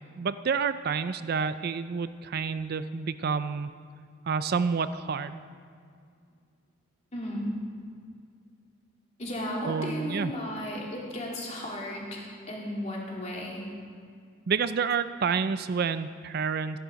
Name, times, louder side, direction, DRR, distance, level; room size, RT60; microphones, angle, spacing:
voice 1, 0.2-3.7 4.3-5.4 9.7-10.3 14.5-16.8, right 5 dB, 50° right, 12 dB, 0.4 m, -29 dB
voice 2, 7.1-7.5 9.2-13.6, equal, 35° left, -3 dB, 2.8 m, -35 dB
14.5 x 11.0 x 5.2 m, 2.3 s
head